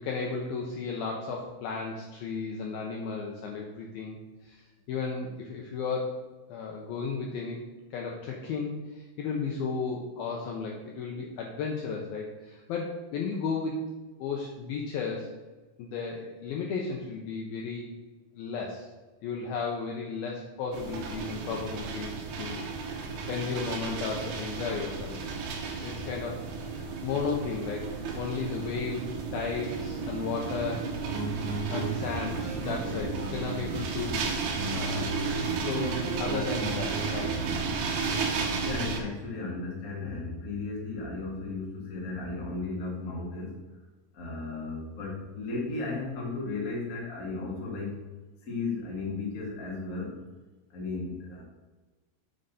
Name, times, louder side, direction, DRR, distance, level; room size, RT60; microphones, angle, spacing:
voice 1, 0.0-4.2 4.4-6.2 6.5-7.6 7.9-13.8 14.2-15.3 15.8-17.9 18.3-18.9 19.2-25.3 25.8-30.9 31.7-34.3 34.7-37.4, left 5 dB, 80° left, 0 dB, 2.1 m, -34 dB
sound 1, 20.7-39.0, right 4 dB, 85° right, 1.7 m, -33 dB
sound 2, 31.1-34.1 34.5-37.5, right 3 dB, 45° right, 1.8 m, -36 dB
voice 2, 38.6-43.6 44.1-48.0 48.4-50.1 50.7-51.4, left 3 dB, 65° left, -3 dB, 0.8 m, -35 dB
7.7 x 6.6 x 4.1 m, 1.2 s
omnidirectional pair, 5.2 m